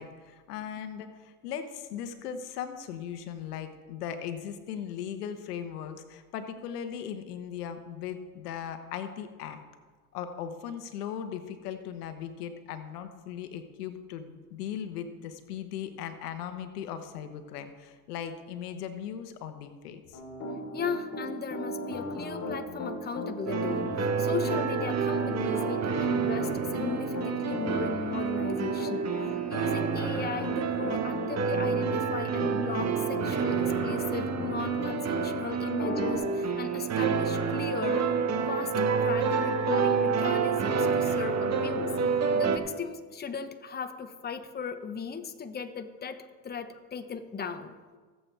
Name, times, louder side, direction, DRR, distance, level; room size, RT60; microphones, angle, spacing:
voice 1, 0.0-9.6 10.1-20.2 35.6-35.7, left 8 dB, 85° left, 9 dB, 1.1 m, -38 dB
Piano, 20.1-35.3 35.8-36.2, left 1 dB, 45° left, 3.6 m, -36 dB
voice 2, 20.7-29.1 29.5-38.1 38.5-41.9 42.3-47.7, left 5 dB, 20° left, 8 dB, 1.0 m, -37 dB
sound 1, 23.5-42.6, right 6 dB, 35° right, 1.3 m, -28 dB
19.0 x 7.8 x 3.4 m, 1.4 s
hypercardioid pair, 85°, 45 cm